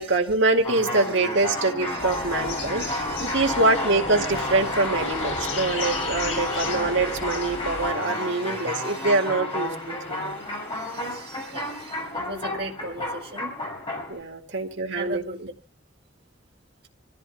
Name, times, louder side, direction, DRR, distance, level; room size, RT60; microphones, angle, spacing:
voice 1, 0.0-10.4 12.0-12.1 14.1-15.5, right 2 dB, 70° right, 3 dB, 2.1 m, -25 dB
sound 1, 0.6-14.2, left 1 dB, 25° left, 5.8 m, -31 dB
voice 2, 1.6-3.6 6.4-6.6 8.1-9.1 10.7-13.5 14.9-15.5, right 2 dB, 55° right, 0 dB, 2.0 m, -39 dB
sound 2, 2.0-7.9, left 4 dB, 85° left, 3.5 m, -36 dB
27.0 x 15.0 x 2.3 m, 0.35 s
head